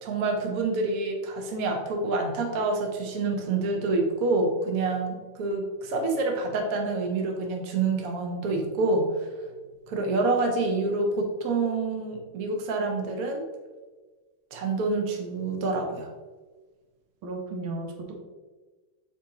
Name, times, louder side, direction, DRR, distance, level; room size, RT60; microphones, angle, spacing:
voice 1, 0.0-9.3 9.9-13.4 14.5-16.1, right 3 dB, 50° right, 2 dB, 1.3 m, -27 dB
voice 2, 17.2-18.1, right 2 dB, 90° right, 2 dB, 1.9 m, -34 dB
7.1 x 4.4 x 3.7 m, 1.3 s
omnidirectional pair, 2.1 m